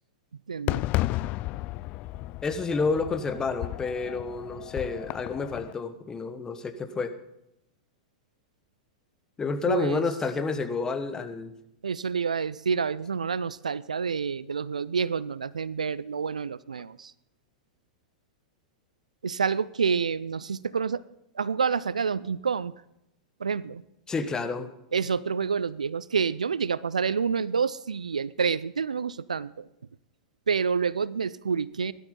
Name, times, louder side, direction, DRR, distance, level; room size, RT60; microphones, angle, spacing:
voice 1, 0.5-0.8 9.7-10.0 11.8-17.1 19.2-21.0 21.3-22.7 23.4-23.8 24.9-29.7 30.5-31.9, right 6 dB, 80° right, 20 dB, 0.4 m, -28 dB
Fireworks, 0.7-5.7, left 18 dB, 40° left, 0.4 m, -33 dB
voice 2, 2.4-7.1 9.4-11.6 24.1-24.7, left 4 dB, 15° left, 10 dB, 1.2 m, -29 dB
17.0 x 12.0 x 3.8 m, 0.83 s
figure-of-eight pair, 100°, 4 cm